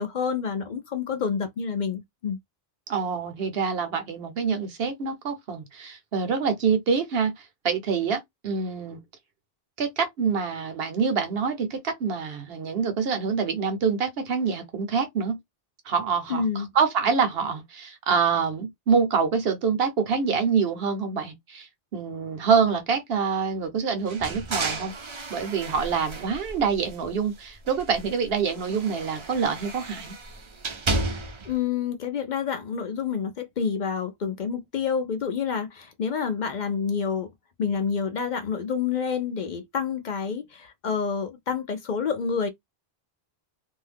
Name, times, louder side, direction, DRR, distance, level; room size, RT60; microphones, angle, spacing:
voice 1, 0.0-2.4 16.3-16.7 31.4-37.3 37.6-42.5, left 6 dB, 55° left, 0.6 m, -28 dB
voice 2, 2.9-9.0 9.8-15.4 15.8-16.4 16.7-30.1, right 6 dB, 70° right, 1.0 m, -26 dB
sound 1, 24.1-27.2 27.6-31.6, right 2 dB, 40° right, 0.5 m, -33 dB
2.6 x 2.2 x 3.3 m
omnidirectional pair, 1.1 m